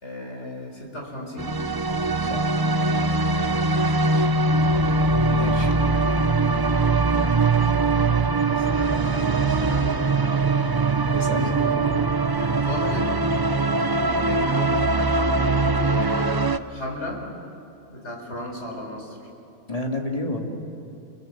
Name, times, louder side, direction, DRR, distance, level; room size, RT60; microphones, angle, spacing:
voice 1, 0.0-1.7 3.5-4.6 5.8-6.1 8.4-10.5 11.3-12.0 12.3-13.3 13.9-17.3 17.9-19.2, left 1 dB, 65° left, 0 dB, 4.6 m, -35 dB
sound 1, 1.4-16.6, right 3 dB, 25° right, 0.5 m, -22 dB
voice 2, 2.2-2.6 5.3-5.8 11.1-11.6 19.7-20.4, left 2 dB, 30° left, 1 dB, 2.5 m, -30 dB
29.5 x 22.5 x 7.2 m, 2.9 s
omnidirectional pair, 1.2 m